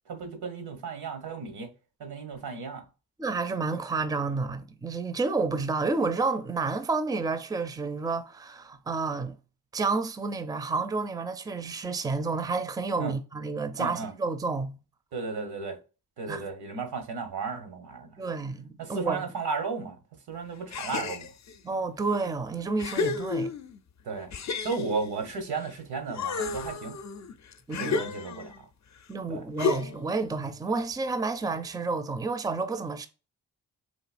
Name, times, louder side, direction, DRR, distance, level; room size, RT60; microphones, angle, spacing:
voice 1, 0.1-1.7 2.0-2.8 13.0-13.1 13.8-14.1 15.1-15.8 16.2-18.3 18.8-20.0 20.3-21.3 24.0-24.3 24.6-27.0 27.8-28.5 29.3-29.4, right 4 dB, 80° right, 1.1 m, -34 dB
voice 2, 3.2-9.4 9.7-14.8 16.3-16.5 18.2-19.3 21.6-23.5 27.7-28.0 29.1-33.1, right 4 dB, 10° right, 0.5 m, -30 dB
gasps effort, 20.7-21.6 22.2-22.3 22.8-23.8 24.3-25.7 26.1-28.6 29.6-30.2, left 4 dB, 45° left, 0.5 m, -32 dB
4.1 x 2.7 x 2.4 m
cardioid pair, 60°, 38 cm